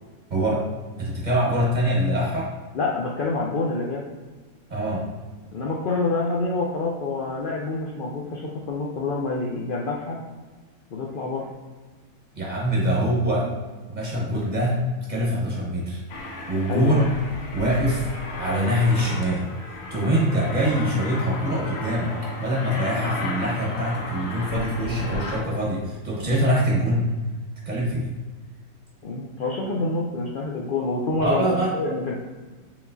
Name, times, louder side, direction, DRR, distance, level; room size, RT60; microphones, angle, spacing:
voice 1, 0.3-0.6 1.0-2.5 4.7-5.0 12.3-13.5 13.9-14.8 15.1-16.0 16.5-17.1 17.5-18.1 18.4-19.5 19.9-22.1 22.4-27.1 27.7-28.1 31.2-31.7, equal, 35° right, -4 dB, 1.0 m, -23 dB
voice 2, 2.7-4.1 5.5-10.2 10.9-11.5 16.7-17.0 29.0-32.2, left 3 dB, 75° left, -3 dB, 0.4 m, -27 dB
Aircraft, 16.1-25.4, left 2 dB, 55° left, 0.8 m, -35 dB
4.7 x 3.7 x 2.6 m, 1.3 s
omnidirectional pair, 1.5 m